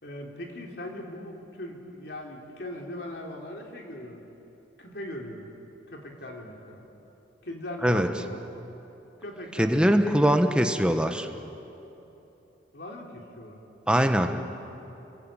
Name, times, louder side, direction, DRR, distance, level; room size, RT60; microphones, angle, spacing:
voice 1, 0.0-4.2 4.8-5.5 5.9-6.8 7.4-8.4 9.2-10.5 12.7-13.6 14.2-14.4, left 1 dB, 60° left, 0 dB, 3.7 m, -39 dB
voice 2, 9.6-11.3 13.9-14.3, equal, 5° right, 6 dB, 1.2 m, -22 dB
29.5 x 22.5 x 9.0 m, 3.0 s
head